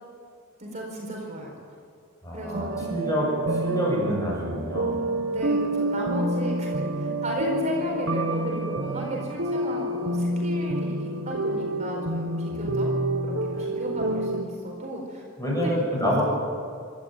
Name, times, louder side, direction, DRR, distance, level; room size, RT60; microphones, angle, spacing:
voice 1, 0.6-1.5 2.3-2.8 5.3-12.9 13.2-15.7 16.0-16.1, right 1 dB, 35° right, -2 dB, 4.5 m, -34 dB
voice 2, 2.2-5.0 12.5-12.6 15.4-16.2, equal, 15° left, -3 dB, 7.8 m, -27 dB
sound 1, 2.5-14.4, right 1 dB, 75° right, 1.7 m, -28 dB
27.0 x 12.5 x 9.2 m, 2.3 s
head